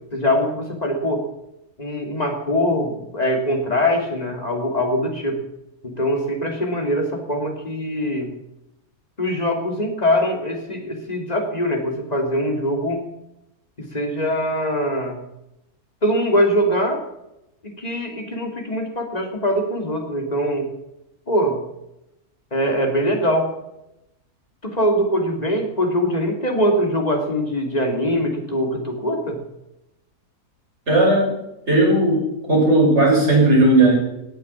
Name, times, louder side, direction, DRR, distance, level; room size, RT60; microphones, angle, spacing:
voice 1, 0.1-1.3 1.8-5.4 5.8-8.3 9.2-13.0 13.8-15.2 16.0-17.0 17.6-20.7 21.3-21.6 22.5-23.5 24.6-29.4, equal, 25° left, 2 dB, 3.2 m, -22 dB
voice 2, 30.9-31.3 31.7-33.9, right 2 dB, 45° right, -3 dB, 6.5 m, -16 dB
18.5 x 8.5 x 7.4 m, 0.88 s
omnidirectional pair, 1.7 m